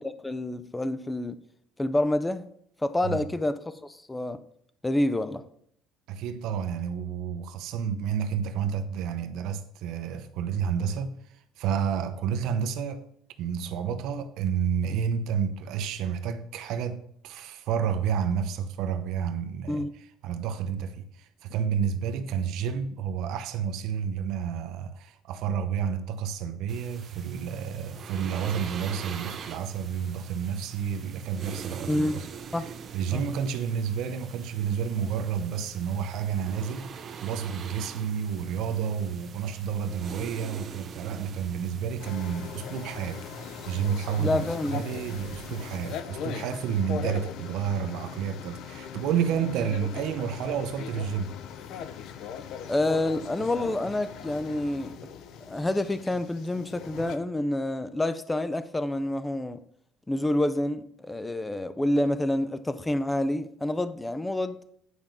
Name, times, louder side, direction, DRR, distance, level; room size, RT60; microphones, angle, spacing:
voice 1, 0.0-1.4 1.8-2.5 2.8-4.4 4.8-5.4 19.7-19.9 31.9-32.2 32.5-32.7 33.1-33.2 44.2-44.8 52.7-55.0 55.4-59.6 60.1-64.6, left 1 dB, 10° left, 0.6 m, -28 dB
voice 2, 6.1-13.0 13.4-32.3 32.5-43.2 43.7-51.3, right 7 dB, 65° right, 0.9 m, -30 dB
sound 1, 26.7-46.0, right 6 dB, 35° right, 1.0 m, -43 dB
sound 2, 42.0-57.2, left 7 dB, 60° left, 0.8 m, -40 dB
9.7 x 5.2 x 6.1 m
cardioid pair, 145°, 0 cm